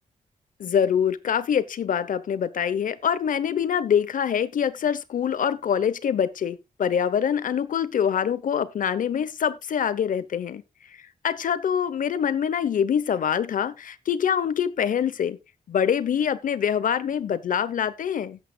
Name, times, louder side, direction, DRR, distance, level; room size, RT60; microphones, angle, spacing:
voice 1, 0.6-10.6 11.2-15.4 15.7-18.4, left 8 dB, 90° left, 0.9 m, -25 dB
17.5 x 8.2 x 2.3 m
wide cardioid pair, 165°, 13 cm